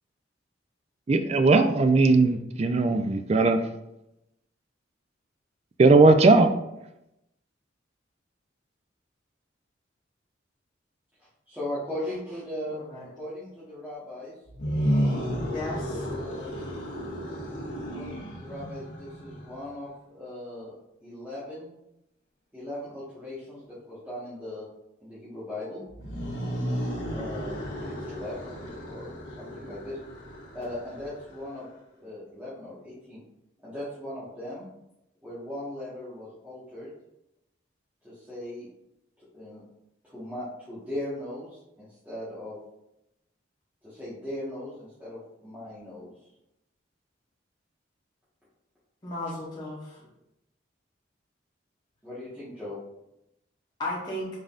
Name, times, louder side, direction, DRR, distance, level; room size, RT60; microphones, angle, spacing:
voice 1, 1.1-3.6 5.8-6.5, right 3 dB, 35° right, 8 dB, 0.3 m, -18 dB
voice 2, 11.5-12.8 13.1-14.3 16.1-16.8 17.9-20.7 21.0-21.7 22.5-24.7 25.0-25.8 27.1-30.0 30.5-31.7 32.0-33.2 33.6-34.7 35.2-36.9 38.0-38.7 39.3-39.6 40.0-42.6 43.8-46.1 52.0-52.8, left 1 dB, 10° right, -12 dB, 1.3 m, -38 dB
voice 3, 12.7-13.0 15.5-16.0 49.0-50.0 53.8-54.3, left 1 dB, 25° left, -7 dB, 1.0 m, -35 dB
sound 1, 14.5-19.6 25.9-31.6, equal, 75° left, 1.2 m, -33 dB
5.4 x 3.8 x 2.4 m, 0.87 s
head